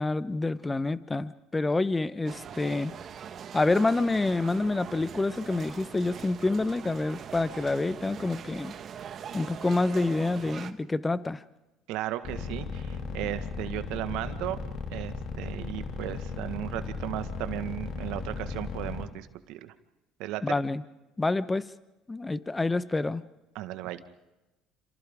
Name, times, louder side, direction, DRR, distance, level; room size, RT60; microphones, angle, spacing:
voice 1, 0.0-2.9 3.5-8.7 9.3-11.4 20.4-20.8 21.2-21.7 22.1-23.2, left 2 dB, 20° left, 14 dB, 1.1 m, -27 dB
sound 1, 2.2-10.7, right 8 dB, 50° right, 1.4 m, -42 dB
voice 2, 11.9-14.6 14.9-19.7 20.2-20.5 23.5-24.0, right 14 dB, 75° right, 10 dB, 1.6 m, -35 dB
sound 2, 12.2-19.1, left 4 dB, 55° left, 3.2 m, -35 dB
28.5 x 27.0 x 3.7 m, 1.0 s
supercardioid pair, 75°, 0 cm